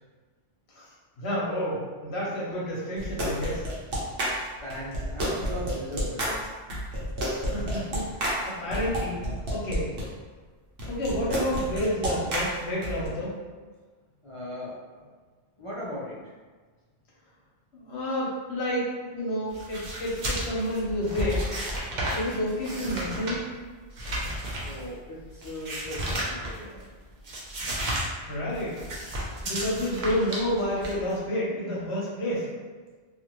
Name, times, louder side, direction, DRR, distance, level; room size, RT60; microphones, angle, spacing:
voice 1, 1.2-3.6 7.3-9.2 9.5-9.9 10.9-13.3 17.8-21.5 22.1-23.5 28.3-28.8 29.4-32.5, equal, 75° left, -6 dB, 1.1 m, -30 dB
sound 1, 3.0-10.0 10.8-13.1, equal, 65° right, 1.0 m, -30 dB
voice 2, 4.6-6.4 14.2-15.1 15.6-16.2 24.6-27.0, equal, 50° left, -8 dB, 0.4 m, -38 dB
sound 2, 19.5-26.9 27.2-28.1 28.3-31.2, right 1 dB, 50° right, 0.7 m, -33 dB
2.5 x 2.4 x 2.9 m, 1.4 s
omnidirectional pair, 1.1 m